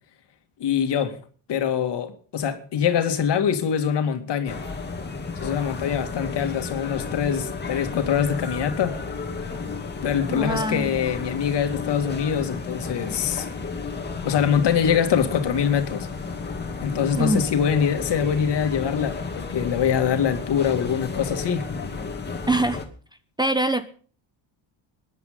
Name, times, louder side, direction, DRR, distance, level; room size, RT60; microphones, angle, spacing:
voice 1, 0.6-1.2 1.5-4.6 5.4-9.0 9.9-13.4 14.2-16.1 16.8-21.7, left 8 dB, 60° left, 2.4 m, -24 dB
sound 1, 4.5-22.8, left 4 dB, 20° left, 2.6 m, -32 dB
voice 2, 10.3-10.9 17.2-17.4 22.5-22.8 23.4-23.9, right 2 dB, 10° right, 0.9 m, -23 dB
22.0 x 11.0 x 3.8 m
cardioid pair, 110°, 46 cm